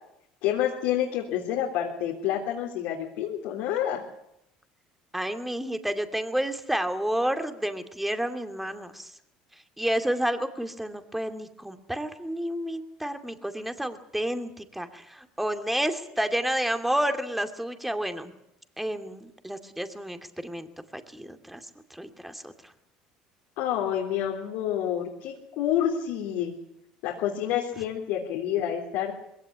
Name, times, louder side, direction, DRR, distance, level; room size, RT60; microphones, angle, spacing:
voice 1, 0.4-4.0 23.6-26.5 27.0-29.1, left 10 dB, 75° left, -1 dB, 3.4 m, -28 dB
voice 2, 5.1-9.1 9.8-18.4 18.8-20.7 20.9-21.6 21.9-22.5, right 1 dB, 5° right, 8 dB, 2.6 m, -30 dB
21.5 x 17.0 x 9.8 m, 0.81 s
supercardioid pair, 90°, 3 cm